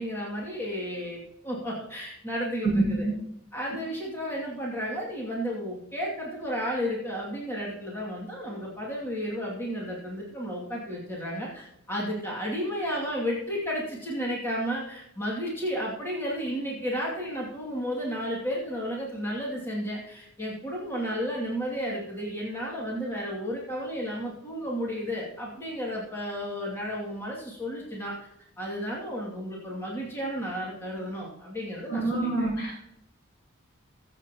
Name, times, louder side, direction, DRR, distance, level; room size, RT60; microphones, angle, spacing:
voice 1, 0.0-3.1 3.5-28.2 28.6-32.5, equal, 10° left, -5 dB, 2.4 m, -33 dB
voice 2, 2.6-3.2 31.9-32.8, right 2 dB, 70° left, -4 dB, 5.8 m, -26 dB
22.0 x 8.0 x 3.0 m, 0.77 s
head